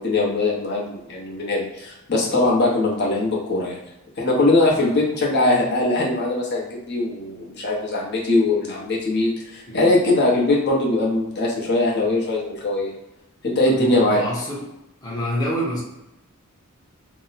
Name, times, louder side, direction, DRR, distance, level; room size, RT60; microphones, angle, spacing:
voice 1, 0.0-3.8 4.2-12.9 13.4-14.2, left 2 dB, 50° left, -4 dB, 0.8 m, -21 dB
voice 2, 4.7-5.0 9.7-10.0 13.7-14.6 15.0-15.8, equal, 20° left, -6 dB, 0.7 m, -28 dB
2.8 x 2.0 x 4.0 m, 0.92 s
head